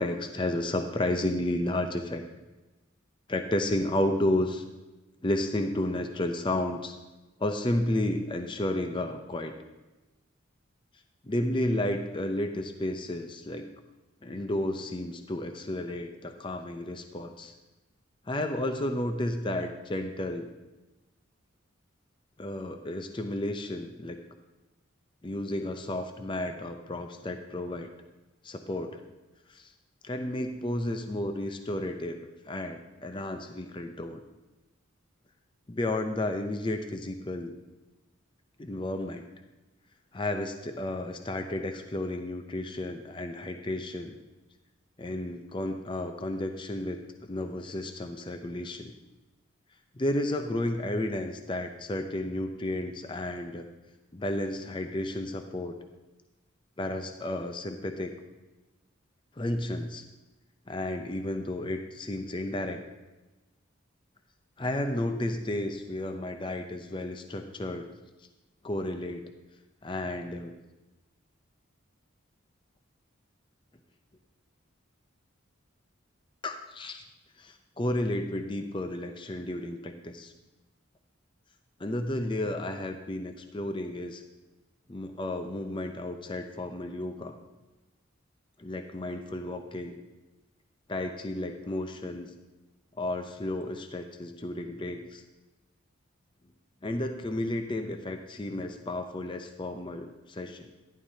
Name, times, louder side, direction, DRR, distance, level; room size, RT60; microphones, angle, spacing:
voice 1, 0.0-2.2 3.3-4.6 5.2-7.0 7.4-9.5 11.2-13.7 14.2-17.6 18.3-20.5 22.4-24.2 25.2-27.9 28.4-29.0 29.5-29.7 30.0-34.2 35.7-37.5 38.6-39.3 40.1-44.2 45.0-48.9 49.9-53.7 54.1-55.8 56.8-58.1 59.4-60.0 60.7-62.8 64.6-67.9 68.6-69.2 69.8-70.5 76.4-77.1 77.4-80.3 81.8-84.2 84.9-87.4 88.6-90.0 90.9-92.3 93.0-95.2 96.8-100.7, left 1 dB, 25° left, 6 dB, 0.5 m, -32 dB
12.0 x 11.0 x 2.7 m, 1.1 s
head